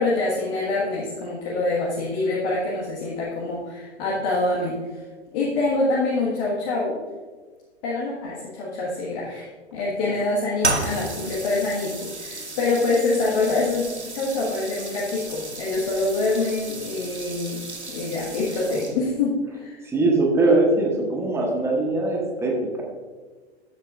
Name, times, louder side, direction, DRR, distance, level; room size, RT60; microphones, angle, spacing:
voice 1, 0.0-5.0 5.3-7.0 7.8-17.6 17.9-19.8, left 2 dB, 40° left, -5 dB, 1.6 m, -25 dB
sound 1, 10.6-19.2, right 2 dB, 85° right, 1.2 m, -33 dB
voice 2, 19.8-22.8, right 2 dB, 10° right, 0 dB, 1.2 m, -21 dB
13.0 x 7.8 x 2.5 m, 1.4 s
figure-of-eight pair, 105°, 33 cm